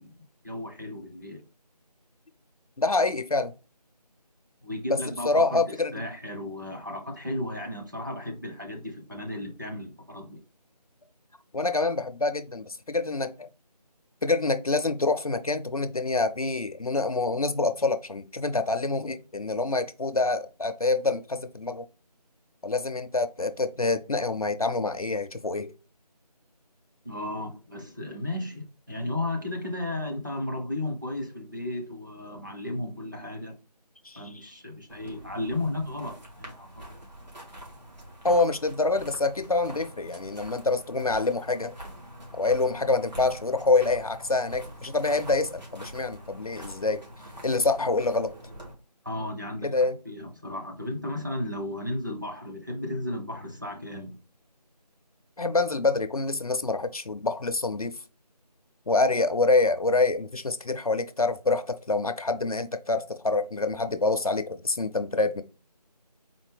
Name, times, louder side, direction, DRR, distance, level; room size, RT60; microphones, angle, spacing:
voice 1, 0.0-1.4 4.6-10.4 27.0-33.5 34.1-36.9 49.0-54.2, left 1 dB, 30° right, 0.7 m, -34 dB
voice 2, 2.8-3.5 5.3-5.9 11.5-13.5 14.2-21.9 22.6-25.7 34.0-34.2 38.2-41.7 42.3-47.0 47.4-48.3 49.6-50.0 55.4-58.0 58.9-65.4, left 3 dB, 60° left, 0.5 m, -26 dB
sound 1, 34.9-48.7, equal, 90° right, 2.4 m, -44 dB
4.2 x 3.7 x 3.2 m
figure-of-eight pair, 180°, 21 cm